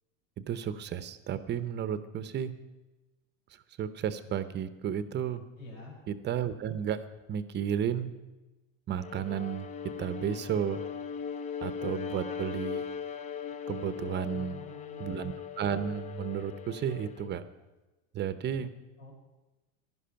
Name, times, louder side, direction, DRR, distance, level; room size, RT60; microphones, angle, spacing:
voice 1, 0.5-2.5 3.8-5.4 6.1-7.0 7.3-8.1 8.9-9.7 10.0-10.8 11.6-12.8 13.7-14.6 15.0-17.4 18.1-18.7, right 9 dB, 30° right, 13 dB, 0.7 m, -33 dB
voice 2, 5.6-6.0 14.3-15.2 19.0-19.1, left 2 dB, 90° left, -4 dB, 5.6 m, -47 dB
Bowed string instrument, 9.0-17.4, left 7 dB, 20° left, 0.4 m, -39 dB
15.5 x 11.0 x 5.7 m, 1.1 s
supercardioid pair, 140°, 39 cm